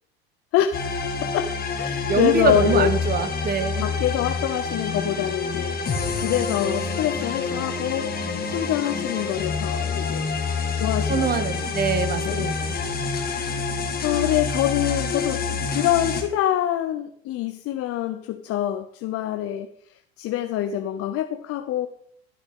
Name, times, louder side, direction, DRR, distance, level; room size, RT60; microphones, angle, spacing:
voice 1, 0.5-2.9 3.8-5.8 6.1-8.1 8.5-10.4 10.7-11.6 12.2-12.7 13.4-13.7 14.0-15.4 15.7-21.9, left 12 dB, 45° left, 0.7 m, -26 dB
sound 1, 0.7-16.2, left 5 dB, 30° left, 1.9 m, -27 dB
voice 2, 2.1-3.8 11.1-12.7, right 6 dB, 30° right, 1.1 m, -24 dB
12.0 x 8.5 x 3.7 m
hypercardioid pair, 90°, 32 cm